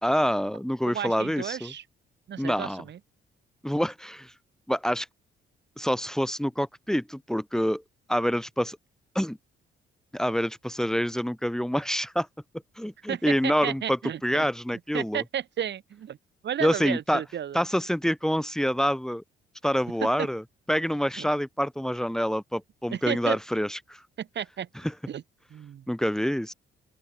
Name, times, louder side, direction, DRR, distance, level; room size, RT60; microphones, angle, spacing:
voice 1, 0.0-1.7 2.4-2.8 3.6-4.3 4.7-5.1 5.8-7.8 8.1-8.8 9.1-9.4 10.1-12.3 12.8-15.2 16.6-17.2 17.5-19.2 19.6-20.4 20.7-24.0 24.8-24.9 25.9-26.5, equal, 5° left, 2.4 m, -27 dB
voice 2, 0.8-1.8 2.3-3.0 13.1-14.5 14.9-16.2 16.4-17.6 20.2-20.3 21.2-21.3 22.9-23.4 24.2-24.7 25.1-25.2 25.5-25.8, right 9 dB, 60° right, 5.1 m, -33 dB
open air
cardioid pair, 90°, 20 cm